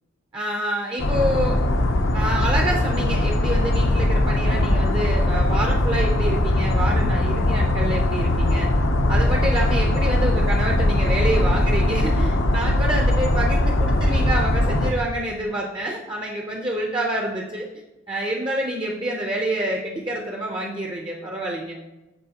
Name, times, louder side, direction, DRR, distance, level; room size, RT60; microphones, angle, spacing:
voice 1, 0.3-1.6 2.1-8.7 9.1-17.7 18.1-21.8, right 1 dB, 25° right, 0 dB, 0.6 m, -27 dB
sound 1, 1.0-14.9, left 1 dB, 70° left, 0.7 m, -20 dB
13.5 x 4.8 x 2.8 m, 1.0 s
head